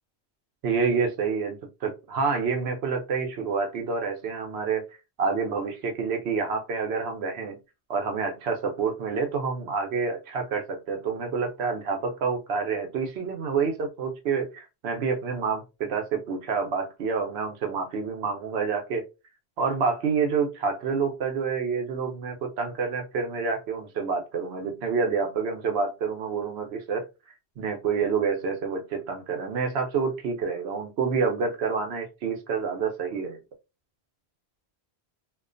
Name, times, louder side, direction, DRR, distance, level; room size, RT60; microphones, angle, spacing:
voice 1, 0.6-4.8 5.2-7.6 7.9-19.0 19.6-27.0 27.6-33.4, right 5 dB, 75° right, 0.9 m, -28 dB
2.4 x 2.2 x 2.4 m
omnidirectional pair, 1.1 m